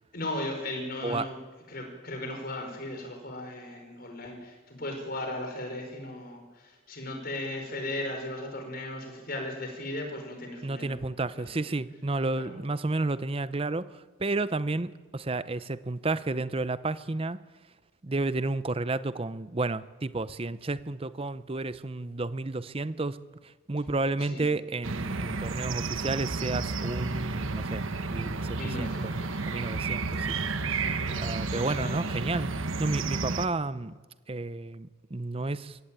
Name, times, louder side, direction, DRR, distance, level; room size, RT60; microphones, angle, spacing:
voice 1, 0.1-1.4 1.7-11.0 11.3-11.5 12.4-12.5 24.2-24.5 28.2-29.5 30.7-32.1, left 1 dB, 45° left, 3 dB, 4.9 m, -37 dB
voice 2, 10.6-17.4 18.0-23.2 23.4-29.1 29.5-30.4 31.2-33.9 34.3-35.8, right 2 dB, 25° right, 15 dB, 0.6 m, -31 dB
sound 1, 24.8-33.5, right 3 dB, 70° right, 1.1 m, -32 dB
23.0 x 16.5 x 8.9 m, 1.3 s
head